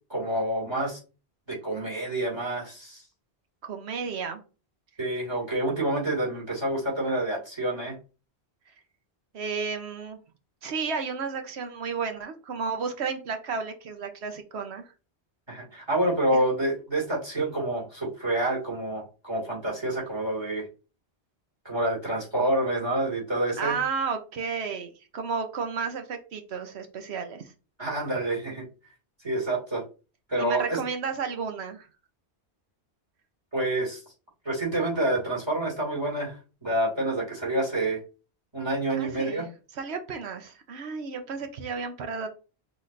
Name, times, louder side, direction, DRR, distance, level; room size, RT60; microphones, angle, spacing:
voice 1, 0.1-1.0 1.5-3.0 5.0-8.0 15.5-20.7 21.6-23.8 27.8-28.7 29.2-29.8 30.3-30.8 33.5-34.0 34.4-38.0 38.5-39.5, right 1 dB, 25° right, -5 dB, 2.5 m, -28 dB
voice 2, 3.6-4.4 9.3-10.2 10.6-14.8 16.3-16.4 23.6-27.5 30.4-31.9 39.0-39.5 39.7-42.3, right 5 dB, 75° right, 7 dB, 1.0 m, -32 dB
6.2 x 3.2 x 2.5 m, 0.33 s
omnidirectional pair, 1.1 m